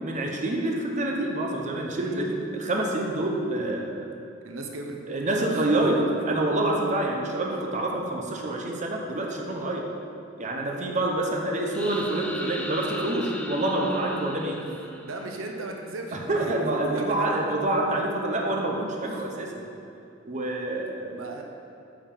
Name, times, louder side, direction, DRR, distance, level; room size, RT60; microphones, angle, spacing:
voice 1, 0.0-3.9 5.1-9.9 10.4-14.6 16.1-19.7 20.2-21.1, right 1 dB, 40° right, 0 dB, 0.9 m, -27 dB
voice 2, 4.2-5.0 5.5-5.9 15.0-16.5 16.8-17.4 19.0-19.2 21.1-21.4, right 2 dB, 85° right, 2 dB, 0.9 m, -37 dB
sound 1, 11.7-15.6, left 1 dB, 5° left, 0.5 m, -38 dB
8.7 x 5.4 x 5.3 m, 2.8 s
head